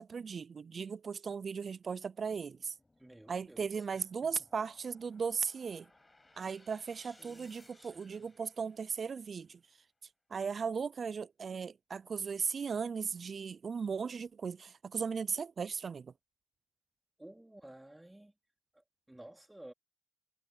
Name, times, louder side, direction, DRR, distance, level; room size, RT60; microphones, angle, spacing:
voice 1, 0.0-2.8 3.3-5.9 6.4-9.6 10.3-16.1, right 6 dB, 40° right, 0.3 m, -37 dB
sound 1, 2.3-9.5, left 2 dB, 15° left, 5.8 m, -65 dB
voice 2, 3.0-3.7 4.0-4.1 7.0-8.3 17.2-18.3 18.7-19.7, right 1 dB, 10° right, 3.1 m, -54 dB
cardioid pair, 90°, 0 cm